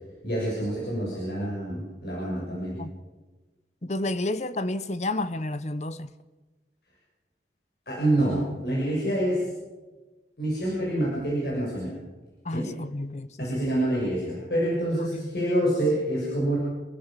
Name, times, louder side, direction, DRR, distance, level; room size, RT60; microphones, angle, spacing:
voice 1, 0.2-2.8 7.9-9.5 10.4-11.9 12.5-12.7 13.4-16.6, right 1 dB, 60° left, 7.1 m, -27 dB
voice 2, 3.8-6.1 12.4-13.6 15.1-15.3, left 2 dB, 40° left, 0.9 m, -31 dB
28.0 x 15.5 x 7.5 m
head